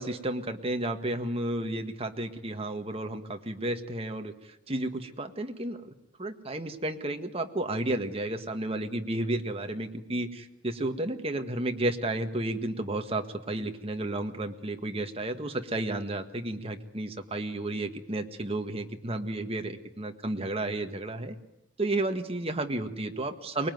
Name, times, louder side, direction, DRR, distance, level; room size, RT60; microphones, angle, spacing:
voice 1, 0.0-4.3 4.7-5.9 6.2-21.3 21.8-23.7, right 1 dB, 30° right, 6 dB, 1.7 m, -32 dB
24.0 x 20.5 x 9.4 m, 0.85 s
head